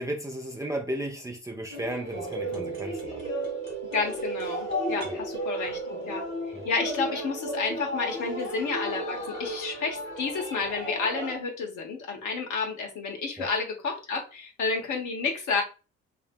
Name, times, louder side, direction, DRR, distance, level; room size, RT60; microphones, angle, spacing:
voice 1, 0.0-3.3 5.0-5.2 6.5-6.6 13.4-13.5, right 1 dB, 10° right, 0.5 m, -34 dB
sound 1, 1.7-11.3, equal, 75° left, 1.0 m, -35 dB
sound 2, 2.1-7.2, right 5 dB, 80° right, 1.0 m, -36 dB
voice 2, 3.9-5.8 6.1-15.6, left 4 dB, 50° left, 1.1 m, -31 dB
5.7 x 2.1 x 2.4 m
figure-of-eight pair, 45°, 39 cm